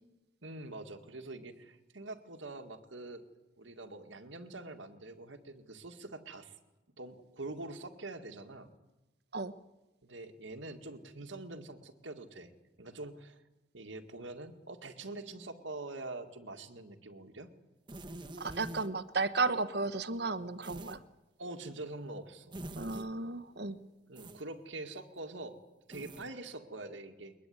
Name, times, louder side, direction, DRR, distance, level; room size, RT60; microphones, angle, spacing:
voice 1, 0.4-3.3 3.6-6.6 7.0-8.7 10.0-12.5 12.8-13.4 13.7-17.5 21.4-22.6 24.1-25.6 25.9-27.4, right 2 dB, 85° right, 6 dB, 2.1 m, -45 dB
sound 1, 17.9-18.9 20.6-21.0 22.5-23.1 24.1-24.4 25.9-26.3, right 1 dB, 25° right, 1.2 m, -45 dB
voice 2, 18.4-21.0 22.8-23.8, right 3 dB, 55° right, 13 dB, 1.2 m, -34 dB
22.0 x 21.5 x 9.5 m, 1.0 s
head